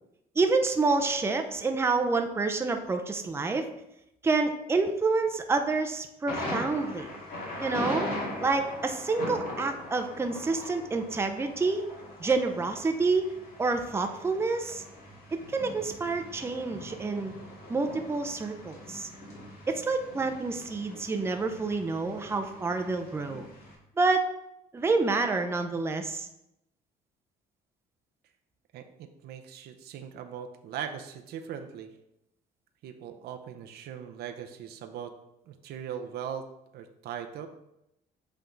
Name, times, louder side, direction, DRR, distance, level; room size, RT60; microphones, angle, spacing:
voice 1, 0.4-3.7 4.2-7.1 7.6-8.1 8.4-11.9 12.2-13.3 13.6-14.8 15.3-17.3 17.7-19.1 19.7-23.4 24.0-24.3 24.7-26.3, right 3 dB, 15° right, 6 dB, 0.6 m, -28 dB
Thunder, 6.3-23.7, left 1 dB, 60° left, 2.2 m, -41 dB
voice 2, 28.7-31.9 32.8-35.1 35.5-36.4 36.7-37.5, right 8 dB, 70° right, 6 dB, 0.7 m, -39 dB
7.9 x 3.5 x 3.9 m, 0.84 s
cardioid pair, 110°, 17 cm